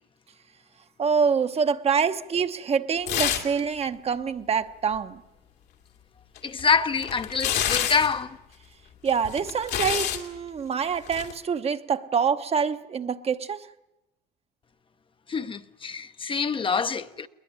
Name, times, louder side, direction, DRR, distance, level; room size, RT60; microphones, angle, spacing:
voice 1, 1.0-5.2 9.0-13.7, right 6 dB, 35° right, 1.0 m, -26 dB
sound 1, 3.1-3.6 3.9-4.0 6.4-8.2 9.1-10.3 11.1-11.3, left 10 dB, 80° left, 2.5 m, -28 dB
voice 2, 6.4-8.4 15.3-17.3, left 5 dB, 30° left, 0.8 m, -26 dB
21.0 x 20.0 x 9.6 m
cardioid pair, 110°, 17 cm